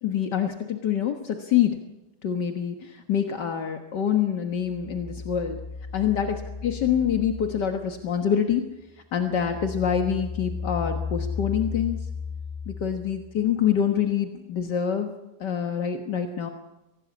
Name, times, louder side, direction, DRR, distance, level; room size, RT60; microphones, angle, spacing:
voice 1, 0.0-1.8 2.2-5.6 5.9-8.6 9.1-12.0 12.7-15.1 15.4-16.5, left 8 dB, 75° left, 5 dB, 2.0 m, -26 dB
sound 1, 4.6-8.5 8.9-13.4, left 5 dB, 10° left, 0.7 m, -35 dB
24.0 x 18.0 x 8.5 m, 1.0 s
omnidirectional pair, 1.9 m